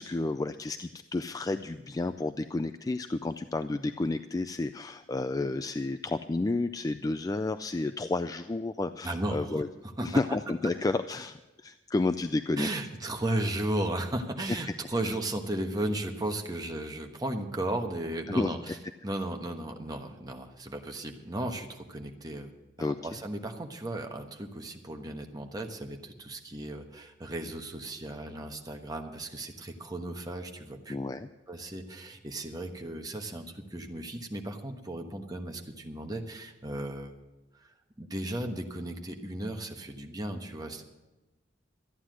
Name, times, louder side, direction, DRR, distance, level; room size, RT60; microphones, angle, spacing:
voice 1, 0.0-9.7 10.0-12.7 18.3-18.8 22.8-23.0 30.9-31.3, left 2 dB, 20° left, 10 dB, 0.3 m, -31 dB
voice 2, 9.0-9.6 10.0-10.2 12.6-18.8 19.0-22.5 22.8-31.0 31.5-37.1 37.6-40.8, right 1 dB, 20° right, 4 dB, 1.2 m, -35 dB
14.0 x 9.8 x 6.2 m, 1.1 s
head